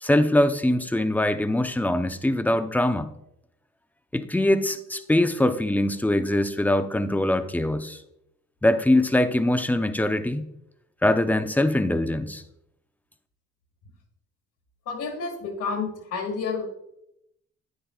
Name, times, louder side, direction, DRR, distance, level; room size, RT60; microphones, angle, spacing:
voice 1, 0.0-3.1 4.1-8.0 8.6-10.5 11.0-12.4, left 1 dB, 5° left, 9 dB, 0.6 m, -22 dB
voice 2, 14.9-16.6, left 5 dB, 85° left, -2 dB, 2.1 m, -30 dB
10.5 x 9.3 x 2.4 m, 0.81 s
cardioid pair, 90°, 30 cm